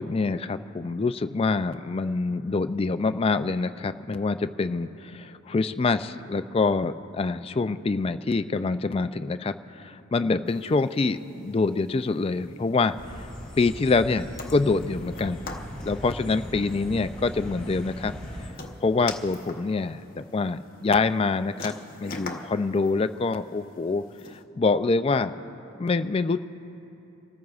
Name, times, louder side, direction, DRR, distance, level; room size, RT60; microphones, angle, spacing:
voice 1, 0.0-13.3 13.6-15.5 15.8-18.1 18.8-21.7 22.0-24.0 24.6-25.3 25.8-26.4, left 3 dB, 25° left, 10 dB, 0.3 m, -25 dB
sound 1, 10.5-24.4, left 3 dB, 40° left, 0.8 m, -45 dB
sound 2, 13.0-18.5, equal, 5° left, 2.9 m, -39 dB
28.0 x 14.0 x 2.4 m, 2.9 s
head